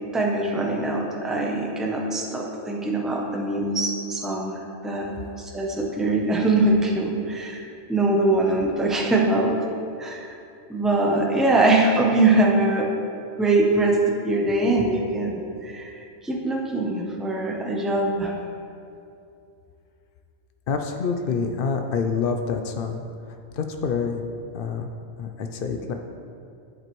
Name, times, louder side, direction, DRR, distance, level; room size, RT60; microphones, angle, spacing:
voice 1, 0.1-4.5 4.8-5.1 5.5-7.6 7.9-9.5 10.0-10.2 10.7-12.9 13.4-16.0 16.2-18.3, right 2 dB, ahead, -1 dB, 0.3 m, -22 dB
voice 2, 20.7-23.0 23.5-24.2 24.5-24.9 25.2-25.9, left 5 dB, 75° left, 5 dB, 0.5 m, -27 dB
7.7 x 7.6 x 3.1 m, 2.6 s
omnidirectional pair, 1.5 m